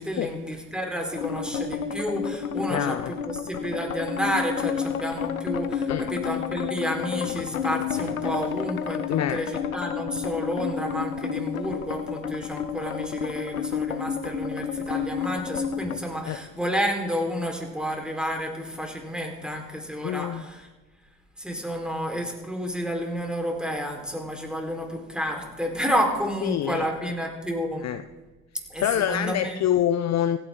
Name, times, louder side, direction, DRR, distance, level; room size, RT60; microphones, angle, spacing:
voice 1, 0.0-20.7 21.4-27.9 28.7-29.6, equal, ahead, 1 dB, 4.3 m, -30 dB
sound 1, 1.1-16.0, left 7 dB, 90° left, 0.7 m, -30 dB
voice 2, 2.7-3.1 5.9-6.1 9.1-9.4 16.3-16.4 20.0-20.4 26.4-26.9 27.8-28.0 28.8-30.4, left 11 dB, 40° left, 12 dB, 0.7 m, -26 dB
26.0 x 10.0 x 3.8 m, 1.2 s
figure-of-eight pair, 50°, 41 cm